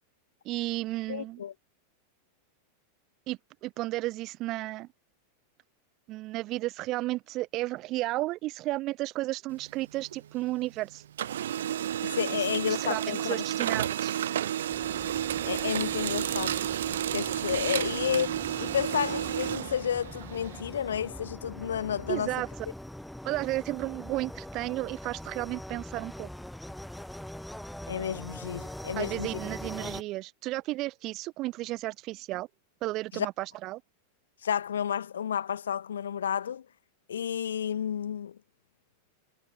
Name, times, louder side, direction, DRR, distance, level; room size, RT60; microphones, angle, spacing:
voice 1, 0.4-1.4 3.3-4.9 6.1-11.0 12.7-14.1 22.1-22.5 23.2-26.3 29.0-32.5 32.8-33.8, right 18 dB, 40° right, 4.9 m, -33 dB
voice 2, 1.1-1.5 12.0-13.4 15.4-16.6 17.1-22.3 27.9-29.4 33.1-33.3 34.4-36.7 37.1-38.4, left 8 dB, 65° left, 3.5 m, -31 dB
Printer, 9.5-10.8 11.0-20.6, right 11 dB, 60° right, 7.5 m, -31 dB
sound 1, 14.7-30.0, left 1 dB, ahead, 3.1 m, -43 dB
figure-of-eight pair, 90°, 0 cm